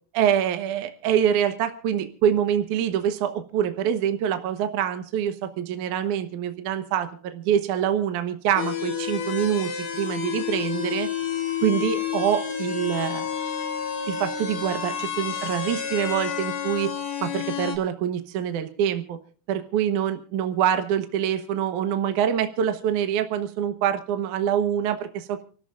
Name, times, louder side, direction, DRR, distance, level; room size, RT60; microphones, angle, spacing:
voice 1, 0.1-11.1 11.6-13.3 14.1-16.9 17.2-19.2 19.5-25.4, right 9 dB, 65° right, 8 dB, 2.1 m, -25 dB
sound 1, 8.6-17.8, left 8 dB, 80° left, 6.1 m, -30 dB
29.5 x 13.5 x 2.5 m, 0.41 s
omnidirectional pair, 4.8 m